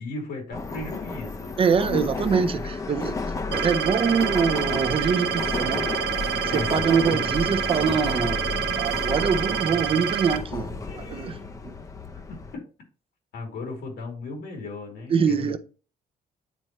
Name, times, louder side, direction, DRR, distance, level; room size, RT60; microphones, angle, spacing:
voice 1, 0.0-1.5 1.9-2.0 6.5-7.2 12.3-12.4 13.3-15.6, left 3 dB, 90° left, 3.0 m, -35 dB
Subway metro underground, 0.5-12.5, left 3 dB, 20° left, 0.5 m, -32 dB
voice 2, 1.6-5.9 6.4-8.4 8.7-11.7 15.1-15.6, right 6 dB, 35° right, 0.5 m, -24 dB
sound 1, 3.5-10.4, right 10 dB, 80° right, 0.7 m, -28 dB
sound 2, 4.8-7.9, left 6 dB, 45° left, 0.8 m, -43 dB
9.1 x 4.3 x 3.0 m
cardioid pair, 160°, 17 cm